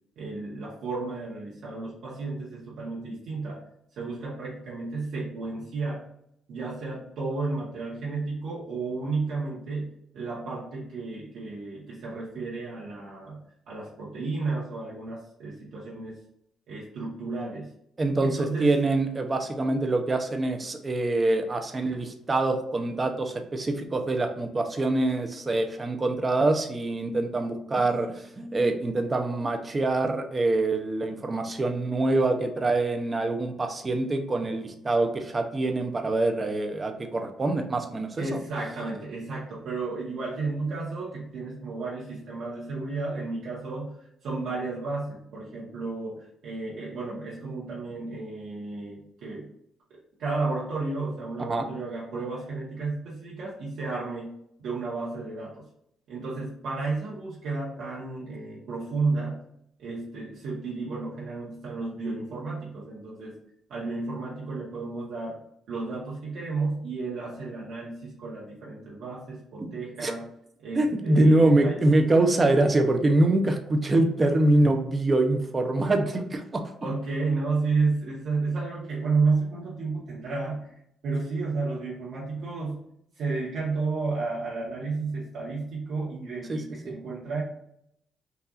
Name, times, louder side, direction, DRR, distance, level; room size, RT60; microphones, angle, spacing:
voice 1, 0.2-3.6 3.9-6.0 6.5-16.2 16.7-17.7 18.2-18.8 38.2-43.9 44.2-49.5 50.2-54.3 54.6-55.6 56.1-59.4 59.8-63.4 63.7-65.4 65.7-70.3 70.6-71.8 76.8-80.7 81.0-82.8 83.1-87.4, right 3 dB, 75° right, -7 dB, 1.4 m, -32 dB
voice 2, 18.0-38.1 51.4-51.6 69.6-69.7 70.0-70.1 70.7-76.6 86.5-87.0, right 2 dB, 30° right, 5 dB, 0.8 m, -24 dB
5.6 x 2.6 x 2.5 m, 0.75 s
cardioid pair, 90°, 0 cm